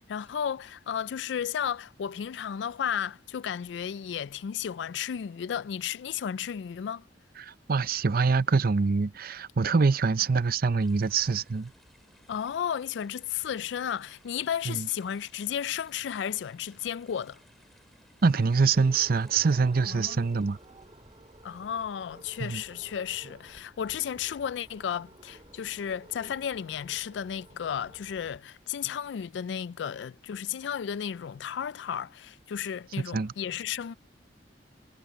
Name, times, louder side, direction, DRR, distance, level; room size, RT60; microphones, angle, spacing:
voice 1, 0.0-7.1 12.3-17.4 19.8-20.2 21.4-33.9, left 8 dB, 70° left, 0.3 m, -33 dB
voice 2, 7.4-11.7 14.7-14.9 18.2-20.6 22.4-22.6 33.1-33.3, right 4 dB, 55° right, 0.6 m, -25 dB
sound 1, 10.8-22.6, equal, ahead, 6.9 m, -62 dB
sound 2, 18.7-28.4, right 1 dB, 30° right, 4.9 m, -53 dB
head